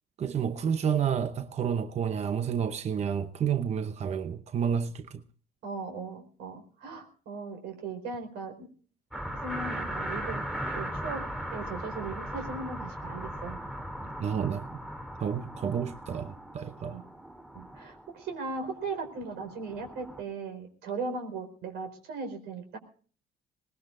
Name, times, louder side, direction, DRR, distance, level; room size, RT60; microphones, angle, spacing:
voice 1, 0.2-5.2 14.2-14.7 15.2-17.0, right 7 dB, 40° right, 0.8 m, -30 dB
voice 2, 5.6-8.7 9.4-10.4 10.7-11.2 11.5-13.6 16.9-17.0 17.5-22.8, right 4 dB, 80° right, 4.7 m, -38 dB
sound 1, 9.1-20.2, right 1 dB, 5° right, 2.9 m, -38 dB
22.5 x 19.5 x 2.6 m
cardioid pair, 110°, 17 cm